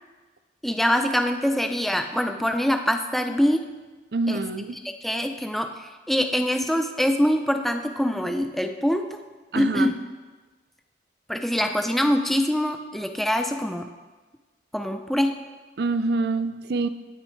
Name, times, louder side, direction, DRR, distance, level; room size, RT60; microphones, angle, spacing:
voice 1, 0.6-3.6 4.3-4.4 5.0-9.1 9.6-9.9 11.3-13.9 14.7-15.3, equal, ahead, 5 dB, 0.4 m, -24 dB
voice 2, 4.1-4.8 9.5-9.9 15.8-16.9, right 3 dB, 60° right, 12 dB, 0.4 m, -26 dB
18.0 x 6.4 x 3.2 m, 1.3 s
head